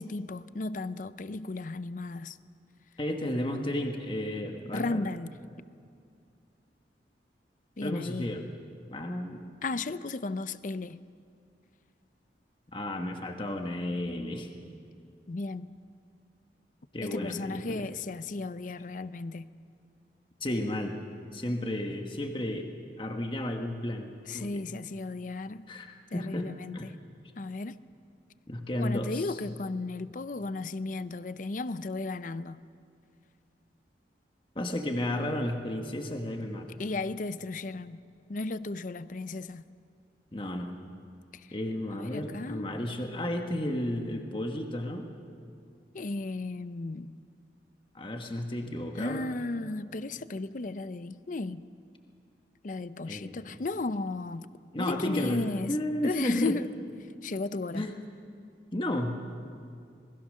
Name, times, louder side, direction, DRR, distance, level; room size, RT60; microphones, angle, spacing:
voice 1, 0.0-2.4 4.7-5.4 7.8-8.3 9.6-11.0 15.3-15.7 17.0-19.5 24.3-25.7 26.1-27.0 27.4-27.8 28.8-32.6 36.8-38.0 38.3-39.6 41.3-41.5 41.9-42.7 45.9-47.2 48.9-51.6 52.6-54.5 54.8-55.8 56.0-56.7 57.2-57.9, left 3 dB, 45° left, 0.5 m, -35 dB
voice 2, 3.0-5.0 7.8-8.4 8.9-9.5 12.7-14.5 16.9-17.9 20.4-21.0 21.3-22.7 23.0-24.6 25.7-26.9 28.5-29.4 34.5-36.8 40.3-40.7 41.5-45.1 47.9-49.2 53.0-53.6 54.7-56.6 57.7-57.9 58.7-59.2, left 1 dB, 30° left, 1.3 m, -33 dB
27.0 x 20.5 x 6.5 m
head